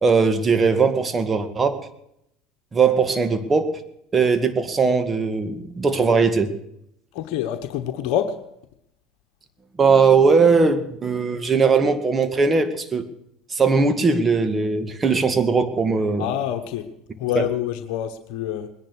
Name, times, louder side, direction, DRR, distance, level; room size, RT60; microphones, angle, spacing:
voice 1, 0.0-1.8 2.7-3.8 4.1-6.5 9.8-13.1 13.5-16.3 17.3-17.5, right 4 dB, 25° right, 9 dB, 2.0 m, -19 dB
voice 2, 7.1-8.3 16.2-16.8 17.2-18.7, left 10 dB, 70° left, 7 dB, 1.1 m, -26 dB
20.5 x 10.5 x 6.3 m, 0.77 s
hypercardioid pair, 80°, 0 cm